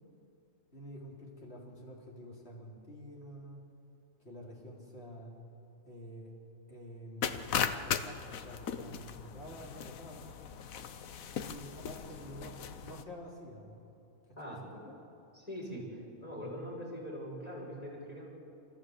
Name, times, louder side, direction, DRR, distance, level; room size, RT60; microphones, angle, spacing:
voice 1, 0.7-3.6 4.2-5.3 5.8-6.3 6.7-7.4 7.8-10.4 11.3-13.8 14.4-15.0, equal, 50° left, -2 dB, 4.0 m, -48 dB
sound 1, 7.2-13.0, left 7 dB, 80° left, 1.3 m, -38 dB
voice 2, 15.3-18.3, equal, 25° left, -3 dB, 5.6 m, -42 dB
27.5 x 14.5 x 8.0 m, 2.8 s
omnidirectional pair, 1.4 m